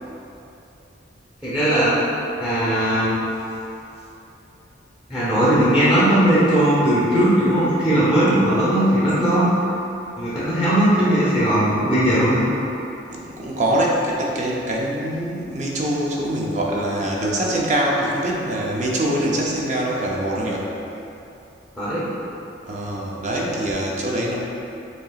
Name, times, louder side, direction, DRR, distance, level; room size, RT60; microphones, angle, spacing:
voice 1, 1.4-2.0 2.4-3.2 5.1-9.5 10.2-12.4 21.8-22.0, right 1 dB, 5° right, -10 dB, 0.9 m, -18 dB
voice 2, 13.1-20.7 22.7-24.4, right 1 dB, 40° right, -3 dB, 0.6 m, -24 dB
7.5 x 2.8 x 2.4 m, 2.8 s
head